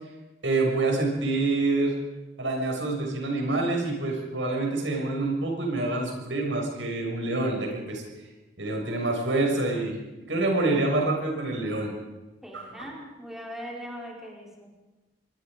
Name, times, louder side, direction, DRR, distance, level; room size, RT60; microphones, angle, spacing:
voice 1, 0.4-2.0 2.4-8.0 8.6-10.0 10.3-11.9 12.5-12.9, right 2 dB, 85° right, 1 dB, 6.6 m, -27 dB
voice 2, 12.4-14.7, equal, ahead, -2 dB, 4.8 m, -40 dB
25.5 x 22.0 x 5.2 m, 1.1 s
head